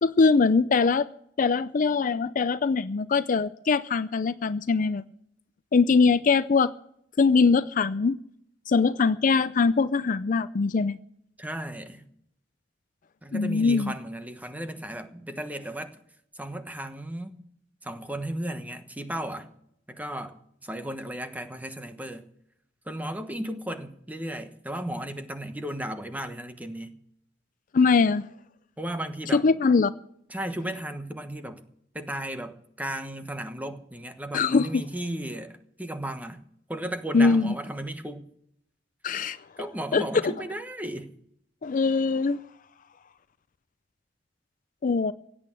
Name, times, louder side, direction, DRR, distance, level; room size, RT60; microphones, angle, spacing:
voice 1, 0.0-1.1 1.4-5.0 5.7-6.7 7.2-8.1 8.7-11.0 13.3-13.9 27.7-28.2 29.3-29.9 34.3-34.8 37.1-37.5 39.0-39.4 39.9-40.3 41.6-42.4 44.8-45.1, left 4 dB, 45° left, 0.5 m, -22 dB
voice 2, 11.4-12.0 13.2-15.9 16.3-17.4 17.8-19.5 19.9-22.2 22.9-26.9 28.8-29.5 30.3-31.6 31.9-36.4 36.7-38.2 39.6-41.1, right 1 dB, 10° right, 1.2 m, -35 dB
16.5 x 8.8 x 7.6 m
head